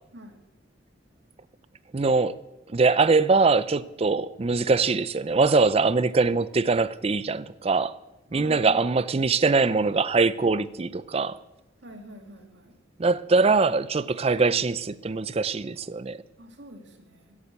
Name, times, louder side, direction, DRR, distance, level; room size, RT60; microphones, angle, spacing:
voice 1, 1.9-2.4 2.7-8.0 8.3-11.4 13.0-16.2, right 4 dB, 30° right, 0.4 m, -22 dB
voice 2, 8.3-8.8 11.8-12.8 16.4-17.4, equal, 65° right, 2.2 m, -45 dB
15.0 x 7.4 x 8.2 m
head